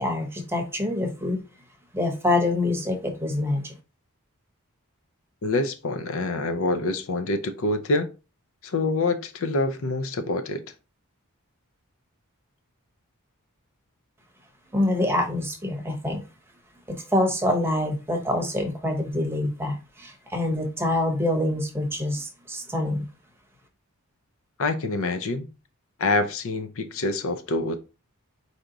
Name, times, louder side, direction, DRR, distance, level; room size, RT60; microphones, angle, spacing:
voice 1, 0.0-1.4 1.9-3.7 14.7-16.2 16.9-23.0, left 1 dB, 10° right, 0.8 m, -26 dB
voice 2, 5.4-8.1 8.6-10.6 24.6-25.5 26.0-27.8, left 2 dB, 60° left, 0.5 m, -26 dB
4.6 x 2.8 x 3.8 m
head